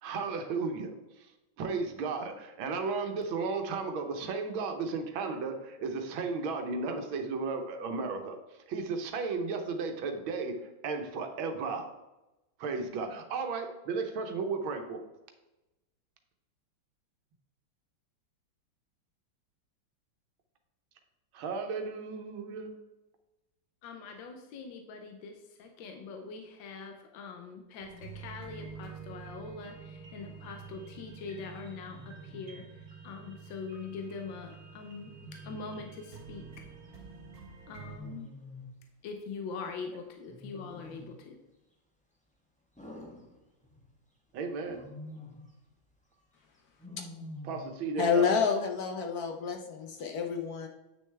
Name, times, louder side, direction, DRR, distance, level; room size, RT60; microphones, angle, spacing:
voice 1, 0.0-1.3 1.6-11.9 12.6-15.0 21.3-22.8 44.3-44.8 47.4-48.3, right 4 dB, 90° right, 5 dB, 1.7 m, -34 dB
voice 2, 23.8-35.1 35.4-36.5 37.7-38.3 39.0-41.4, left 4 dB, 80° left, 4 dB, 1.5 m, -43 dB
sound 1, 27.8-38.0, right 6 dB, 50° right, 2.1 m, -48 dB
Wild animals, 30.4-30.7 32.0-32.7 35.0-35.9 37.7-38.8 40.3-41.2 42.8-43.9 44.6-45.5 46.8-47.8, left 1 dB, 5° left, 0.9 m, -47 dB
voice 3, 48.0-50.7, left 6 dB, 65° left, 4 dB, 1.0 m, -29 dB
8.9 x 6.4 x 3.3 m, 1.0 s
omnidirectional pair, 2.1 m